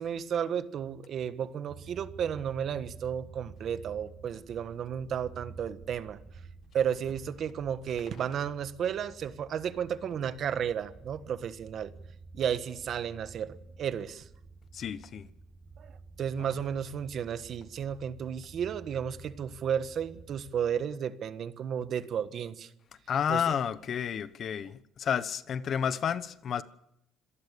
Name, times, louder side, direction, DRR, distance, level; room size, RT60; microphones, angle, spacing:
voice 1, 0.0-6.2 6.7-11.9 12.3-14.2 15.8-22.7 23.3-23.4, right 8 dB, 50° right, 1.4 m, -33 dB
sound 1, 1.7-20.5, right 4 dB, 30° right, 6.6 m, -51 dB
voice 2, 14.7-15.3 16.4-16.5 23.1-26.6, left 8 dB, 45° left, 1.1 m, -31 dB
26.5 x 18.5 x 7.0 m
cardioid pair, 130°, 0 cm